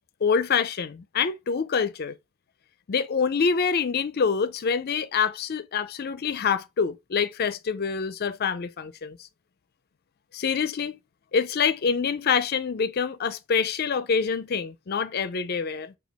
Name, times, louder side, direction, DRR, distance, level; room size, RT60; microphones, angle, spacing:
voice 1, 0.2-2.2 2.9-9.2 10.3-11.0 11.3-15.9, left 6 dB, 45° left, 0.4 m, -26 dB
5.1 x 2.3 x 3.3 m
head